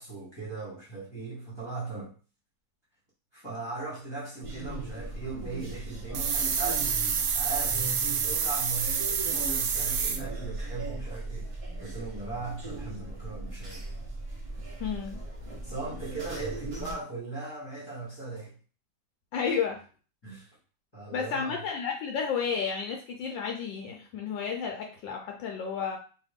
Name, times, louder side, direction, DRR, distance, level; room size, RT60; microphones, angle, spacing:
voice 1, 0.0-2.2 3.3-6.9 7.3-7.8 8.2-11.5 11.8-13.9 15.6-18.6 20.2-20.6 20.9-21.6, right 3 dB, 15° left, 1.0 m, -38 dB
sound 1, 4.4-16.9, right 2 dB, 35° right, 0.5 m, -38 dB
sound 2, 6.1-10.2, right 7 dB, 80° right, 1.3 m, -28 dB
voice 2, 14.8-15.2 19.3-19.8 21.1-26.0, left 6 dB, 75° left, 1.3 m, -32 dB
3.2 x 2.6 x 3.4 m
omnidirectional pair, 2.1 m